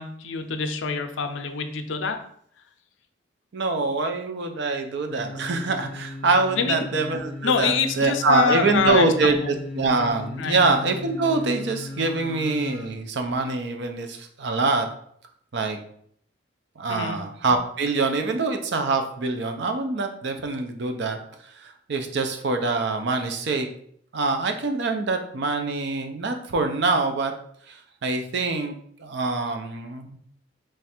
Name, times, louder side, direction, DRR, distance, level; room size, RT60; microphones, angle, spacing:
voice 1, 0.0-2.2 6.6-6.9 7.4-9.5 10.4-10.6 16.9-17.2, left 5 dB, 75° left, 6 dB, 0.5 m, -25 dB
voice 2, 3.5-14.9 15.5-15.8 16.8-21.2 21.6-23.7 24.1-27.3 27.7-30.2, right 3 dB, 60° right, 5 dB, 0.5 m, -25 dB
sound 1, 5.1-12.9 13.3-13.4, left 2 dB, ahead, 1.1 m, -37 dB
3.2 x 2.4 x 4.2 m, 0.64 s
head